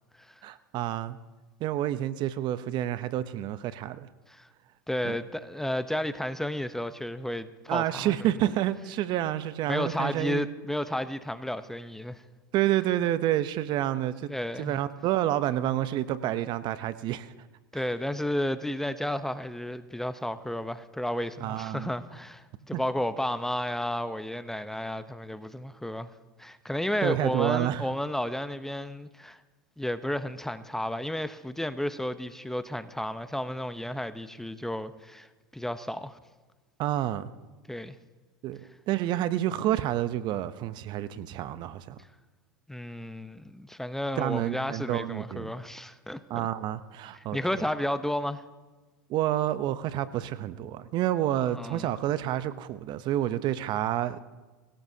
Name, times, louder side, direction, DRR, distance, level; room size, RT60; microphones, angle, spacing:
voice 1, 0.4-1.2 1.6-4.1 5.0-5.2 7.7-10.4 12.5-14.3 14.6-17.3 17.7-17.8 21.4-21.9 22.7-22.8 27.0-27.9 36.8-37.3 38.4-42.0 44.2-45.5 46.3-47.4 49.1-54.2, right 13 dB, 45° right, 0.7 m, -29 dB
voice 2, 4.9-8.1 9.7-12.2 14.3-14.8 17.7-26.1 26.4-29.4 29.8-35.3 35.5-36.2 37.7-38.0 42.7-46.5 47.1-48.4 51.4-51.9, left 1 dB, 5° left, 0.8 m, -32 dB
24.5 x 17.0 x 2.8 m
hypercardioid pair, 95°, 10 cm